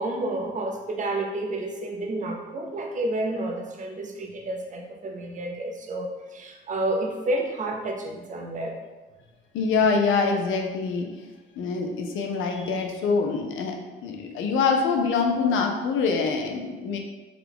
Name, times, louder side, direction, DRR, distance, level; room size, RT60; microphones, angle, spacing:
voice 1, 0.0-8.7, right 1 dB, 40° right, 2 dB, 0.6 m, -30 dB
voice 2, 9.5-11.3 11.6-13.8 14.0-17.0, left 4 dB, 80° left, 3 dB, 0.6 m, -25 dB
3.6 x 2.2 x 3.4 m, 1.2 s
cardioid pair, 90°, 20 cm